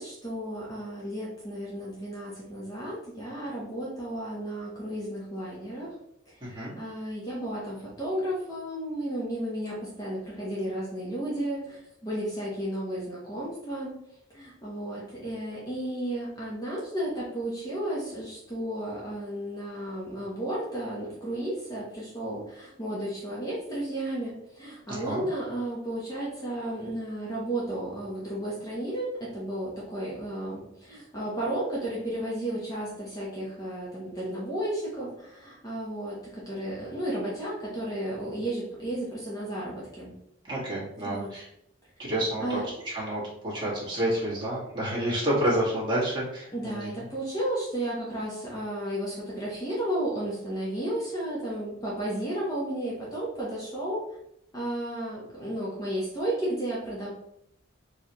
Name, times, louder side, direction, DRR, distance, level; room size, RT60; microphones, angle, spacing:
voice 1, 0.0-5.9 6.3-13.9 14.3-40.1 41.0-41.3 42.4-42.7 46.5-54.0 54.5-57.1, right 1 dB, 20° left, -6 dB, 1.0 m, -33 dB
voice 2, 6.4-6.7 24.9-25.2 40.4-41.5 42.0-42.6 42.8-47.1, right 1 dB, 25° right, -7 dB, 1.7 m, -29 dB
4.6 x 3.3 x 3.0 m, 0.76 s
head